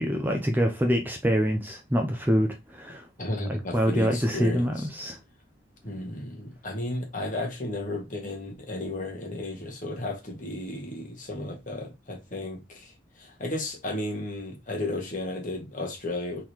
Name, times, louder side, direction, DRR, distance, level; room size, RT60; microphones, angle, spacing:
voice 1, 0.0-3.1 3.5-5.2, equal, 10° right, 0.5 m, -25 dB
voice 2, 3.2-4.9 5.8-16.4, left 1 dB, 40° left, 1.3 m, -34 dB
3.8 x 3.2 x 4.3 m
head